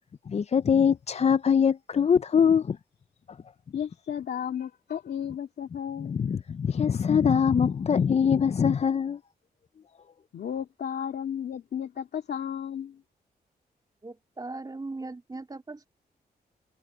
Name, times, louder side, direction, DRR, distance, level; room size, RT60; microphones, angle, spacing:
voice 1, 0.3-2.8 6.0-9.2, left 7 dB, 40° left, 0.5 m, -23 dB
voice 2, 3.7-6.3 10.3-13.0, left 8 dB, 80° left, 2.4 m, -34 dB
voice 3, 14.0-15.9, right 3 dB, 25° right, 2.8 m, -39 dB
cardioid pair, 80°, 17 cm